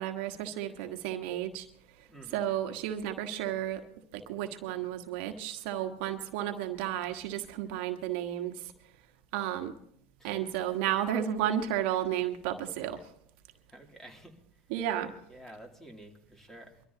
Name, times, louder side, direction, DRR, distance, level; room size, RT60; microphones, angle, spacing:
voice 1, 0.0-1.7 2.3-3.8 4.1-8.5 9.3-9.7 10.2-13.0 14.7-15.1, right 11 dB, 65° right, 5 dB, 1.5 m, -32 dB
voice 2, 2.1-2.5 10.2-10.4 13.7-14.7 15.3-16.8, right 1 dB, 5° left, 2 dB, 2.9 m, -51 dB
23.5 x 13.5 x 2.9 m, 0.72 s
hypercardioid pair, 100°, 6 cm